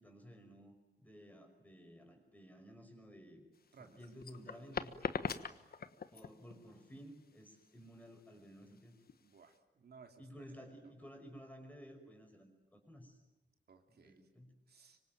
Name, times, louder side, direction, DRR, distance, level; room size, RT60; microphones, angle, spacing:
voice 1, 0.0-3.4 3.8-5.0 6.1-9.0 10.2-13.2 13.9-14.5, equal, 10° left, 4 dB, 5.6 m, -55 dB
sound 1, 3.5-9.6, left 6 dB, 60° left, 1.3 m, -43 dB
voice 2, 9.2-11.1 13.7-14.3 14.7-15.0, right 5 dB, 65° right, 4 dB, 2.7 m, -61 dB
25.5 x 25.0 x 9.3 m, 1.0 s
wide cardioid pair, 175°, 18 cm